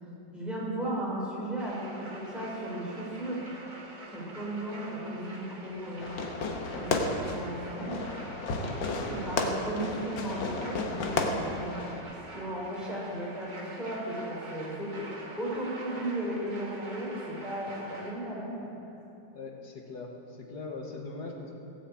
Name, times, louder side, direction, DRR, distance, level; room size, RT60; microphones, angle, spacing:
voice 1, 0.3-3.5 4.1-6.2 6.7-8.1 8.6-8.7 9.0-11.8 12.3-15.1 15.4-18.7, right 1 dB, ahead, -5 dB, 3.7 m, -35 dB
sound 1, 1.6-18.1, right 2 dB, 25° right, 1.7 m, -46 dB
Fireworks, 6.0-12.0, left 3 dB, 75° left, 1.8 m, -32 dB
voice 2, 19.3-21.6, left 3 dB, 60° left, 2 dB, 1.9 m, -41 dB
16.5 x 7.3 x 8.4 m, 2.8 s
omnidirectional pair, 2.1 m